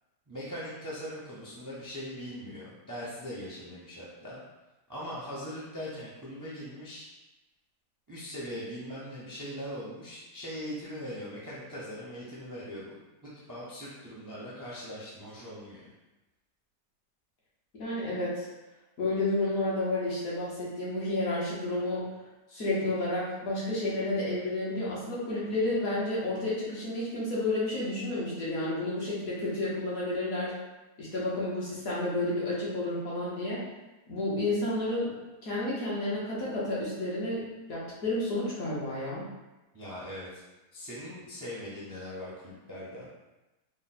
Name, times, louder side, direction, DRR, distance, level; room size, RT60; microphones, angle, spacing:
voice 1, 0.3-4.4 4.9-7.1 8.1-13.0 13.2-15.8 39.7-40.4 40.7-43.1, equal, 25° right, -7 dB, 0.4 m, -40 dB
voice 2, 17.7-18.5 19.0-22.1 22.5-30.5 31.0-33.6 34.1-35.1 35.4-39.2, left 2 dB, 60° left, -7 dB, 1.5 m, -31 dB
4.0 x 2.2 x 4.1 m, 1.0 s
omnidirectional pair, 1.8 m